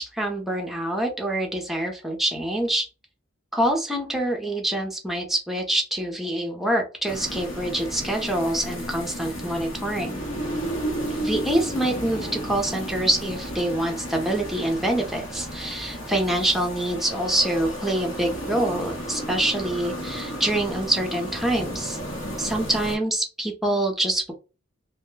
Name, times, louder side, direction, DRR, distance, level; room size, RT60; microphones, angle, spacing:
voice 1, 0.0-2.9 3.5-10.2 11.2-22.0 22.4-24.3, right 1 dB, ahead, 2 dB, 0.6 m, -25 dB
sound 1, 7.1-23.0, equal, 70° left, 0.9 m, -33 dB
2.2 x 2.1 x 3.1 m, 0.31 s
head